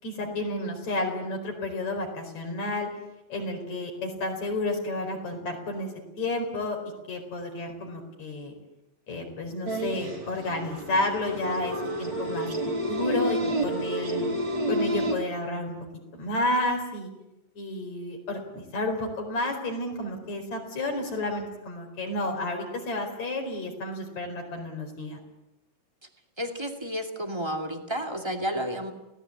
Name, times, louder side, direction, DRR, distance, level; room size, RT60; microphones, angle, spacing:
voice 1, 0.0-2.9 3.3-5.9 6.2-6.8 7.1-8.5 9.1-12.5 12.9-14.3 14.7-15.8 16.1-17.1 17.6-25.2, left 2 dB, 60° left, 3 dB, 5.7 m, -31 dB
sound 1, 9.6-15.1, right 1 dB, 35° right, 3.7 m, -29 dB
voice 2, 26.4-28.9, equal, 10° right, 4 dB, 1.9 m, -31 dB
27.5 x 17.5 x 8.7 m, 0.95 s
omnidirectional pair, 3.7 m